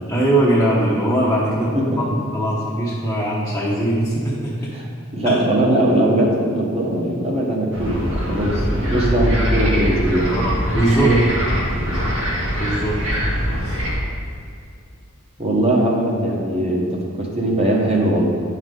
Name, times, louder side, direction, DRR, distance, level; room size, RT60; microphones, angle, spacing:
voice 1, 0.1-4.5 5.2-5.4 10.3-11.1 11.8-12.0 12.6-13.0 13.6-13.8, right 1 dB, 10° left, -7 dB, 0.9 m, -21 dB
voice 2, 4.7-10.3 11.0-11.2 11.9-12.0 15.4-18.2, right 1 dB, 30° right, -3 dB, 1.2 m, -20 dB
sound 1, 7.7-13.9, equal, 65° right, 1.8 m, -22 dB
9.5 x 4.8 x 3.8 m, 2.4 s
head